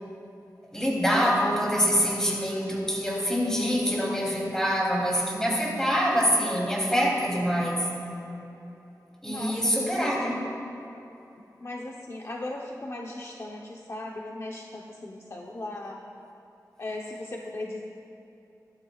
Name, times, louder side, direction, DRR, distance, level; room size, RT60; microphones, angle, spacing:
voice 1, 0.7-7.9 9.2-10.4, equal, 10° left, -4 dB, 3.0 m, -25 dB
voice 2, 9.3-10.4 11.6-16.0 16.8-17.8, left 2 dB, 40° left, -1 dB, 0.9 m, -37 dB
20.0 x 13.0 x 2.4 m, 3.0 s
wide cardioid pair, 105°, 7 cm